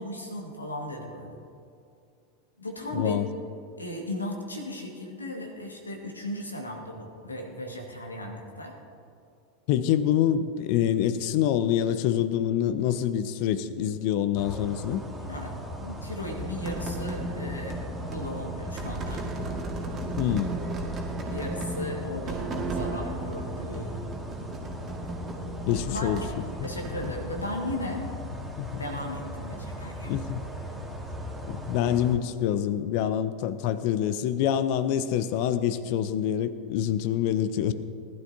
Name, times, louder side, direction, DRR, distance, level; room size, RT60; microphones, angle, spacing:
voice 1, 0.0-1.4 2.6-3.2 3.8-8.7 15.3-17.8 18.1-19.2 21.3-24.0 25.9-26.3 26.6-28.2 28.8-30.1, left 1 dB, 80° left, 2 dB, 1.9 m, -36 dB
voice 2, 2.9-3.3 9.7-15.0 20.2-20.6 25.7-26.2 26.6-26.7 28.6-28.8 30.0-30.4 31.5-37.7, left 10 dB, 50° left, 13 dB, 0.7 m, -26 dB
sound 1, 14.3-32.2, equal, ahead, 2.2 m, -38 dB
sound 2, 16.3-27.1, right 2 dB, 30° right, 1.9 m, -36 dB
19.5 x 11.5 x 2.8 m, 2.4 s
figure-of-eight pair, 85°, 0 cm